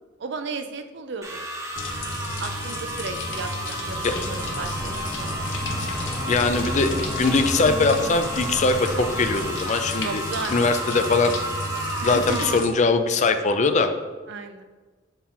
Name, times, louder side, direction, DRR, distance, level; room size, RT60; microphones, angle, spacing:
voice 1, 0.2-1.4 2.4-5.4 10.0-10.8 12.0-12.6 14.3-14.6, right 4 dB, 65° right, 8 dB, 0.5 m, -34 dB
sound 1, 1.2-12.6, right 1 dB, 15° right, 0.8 m, -32 dB
sound 2, 1.8-12.7, left 2 dB, 65° left, 0.8 m, -33 dB
sound 3, 3.8-9.5, equal, ahead, 1.1 m, -34 dB
voice 2, 6.3-6.9 7.2-10.2 10.5-11.3 12.0-13.9, left 3 dB, 40° left, 8 dB, 0.5 m, -21 dB
7.0 x 4.4 x 3.7 m, 1.3 s
head